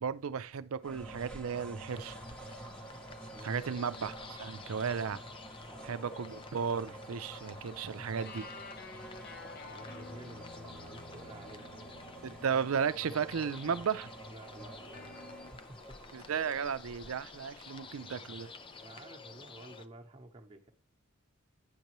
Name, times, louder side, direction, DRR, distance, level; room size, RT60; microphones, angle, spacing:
voice 1, 0.0-2.2 3.4-5.2 5.8-8.4 12.2-14.1 16.1-18.5, right 6 dB, 80° right, 0.5 m, -34 dB
sound 1, 0.8-19.0, right 2 dB, 5° left, 0.8 m, -50 dB
sound 2, 1.9-19.9, left 4 dB, 25° left, 0.4 m, -52 dB
voice 2, 3.3-3.6 5.6-6.0 7.7-8.1 9.6-12.5 14.3-15.2 15.5-16.0 18.8-20.7, right 2 dB, 25° right, 0.9 m, -52 dB
sound 3, 8.2-13.4 14.9-15.6, left 3 dB, 45° left, 0.7 m, -51 dB
9.4 x 6.6 x 3.0 m
head